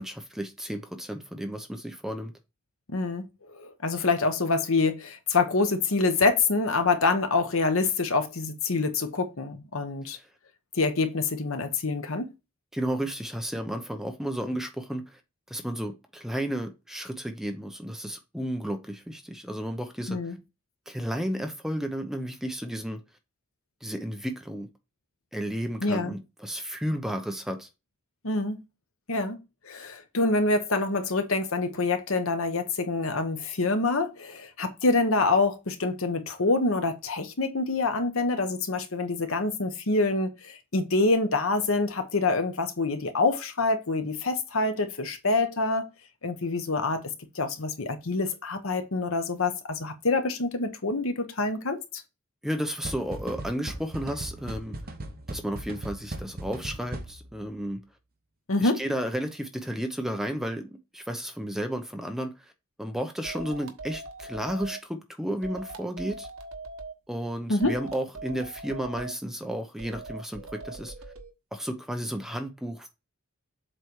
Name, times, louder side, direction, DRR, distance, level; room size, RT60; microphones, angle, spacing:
voice 1, 0.0-2.3 10.1-10.2 12.7-15.2 15.5-20.2 20.9-23.0 23.8-24.7 25.3-27.7 52.4-54.8 55.3-57.8 58.6-62.5 62.8-66.3 67.1-70.9 71.5-72.9, equal, ahead, 0.8 m, -33 dB
voice 2, 2.9-3.2 3.5-10.2 10.7-12.3 20.1-20.4 25.8-26.1 28.2-28.6 29.1-29.4 29.6-45.9 46.2-47.0 47.3-52.0 58.5-58.8 67.5-67.7, left 3 dB, 65° left, 1.1 m, -26 dB
sound 1, 52.8-57.4, right 1 dB, 45° right, 1.1 m, -38 dB
sound 2, 63.2-64.8 65.4-66.9 67.6-69.1 69.8-71.3, right 3 dB, 70° right, 1.2 m, -40 dB
7.7 x 3.4 x 4.6 m
head